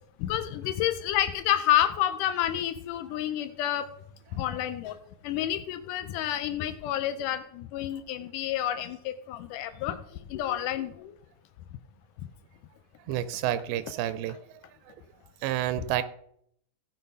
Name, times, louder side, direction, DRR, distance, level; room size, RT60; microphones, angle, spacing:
voice 1, 0.2-3.9 4.3-5.0 5.2-10.0 10.3-11.1 15.8-15.9, left 12 dB, 85° left, 10 dB, 1.8 m, -29 dB
voice 2, 13.1-14.4 15.4-16.0, right 12 dB, 85° right, 13 dB, 2.5 m, -29 dB
15.0 x 5.9 x 5.4 m, 0.71 s
omnidirectional pair, 4.4 m